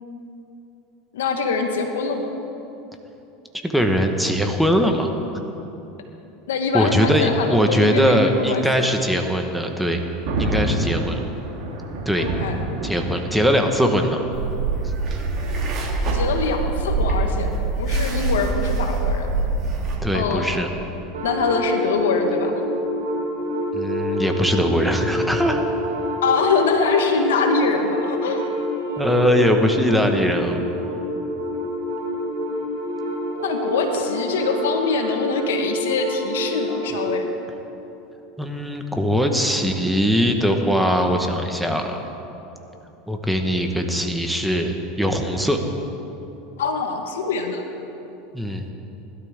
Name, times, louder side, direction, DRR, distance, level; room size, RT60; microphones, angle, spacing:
voice 1, 1.1-2.3 6.5-8.6 12.2-12.6 16.1-19.3 20.1-20.6 21.2-22.6 26.2-28.5 33.3-37.3 46.6-47.6, left 4 dB, 85° left, 4 dB, 1.5 m, -23 dB
voice 2, 3.6-5.1 6.7-10.0 10.4-11.2 12.0-12.3 12.8-14.2 20.0-20.7 23.7-25.6 29.0-30.6 38.4-42.0 43.1-45.6 48.3-48.7, equal, ahead, 4 dB, 1.4 m, -21 dB
Thunder, 9.6-20.4, right 1 dB, 60° right, 3.6 m, -31 dB
sound 1, 14.3-20.0, right 3 dB, 40° right, 2.9 m, -24 dB
sound 2, 21.1-37.1, equal, 85° right, 4.0 m, -27 dB
20.0 x 12.5 x 3.7 m, 2.9 s
supercardioid pair, 105°, 0 cm